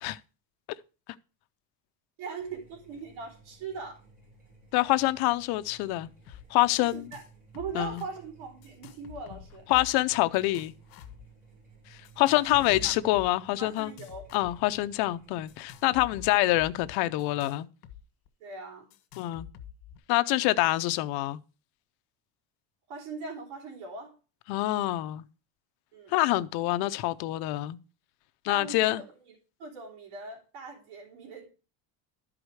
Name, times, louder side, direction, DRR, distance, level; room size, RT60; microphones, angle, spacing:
voice 1, 2.2-4.0 6.8-7.2 7.5-9.7 12.3-12.9 13.6-14.2 18.4-18.9 22.9-24.1 25.9-26.1 28.5-31.5, right 4 dB, 80° right, 3.3 m, -41 dB
sound 1, 2.4-17.2, right 3 dB, 20° right, 5.8 m, -54 dB
voice 2, 4.7-6.1 6.5-7.1 7.7-8.0 9.7-10.7 12.2-13.9 14.3-17.7 19.2-19.5 20.1-21.4 24.5-25.2 26.1-27.8 28.4-29.0, left 17 dB, 60° left, 0.6 m, -26 dB
sound 2, 6.3-6.4 6.7-7.3 7.5-8.1 8.6-10.0 10.3-11.3 12.0-13.3 13.8-14.8 15.5-18.0 18.3-18.4 18.9-20.0, left 10 dB, 75° left, 1.6 m, -47 dB
12.0 x 4.9 x 4.7 m
cardioid pair, 160°, 43 cm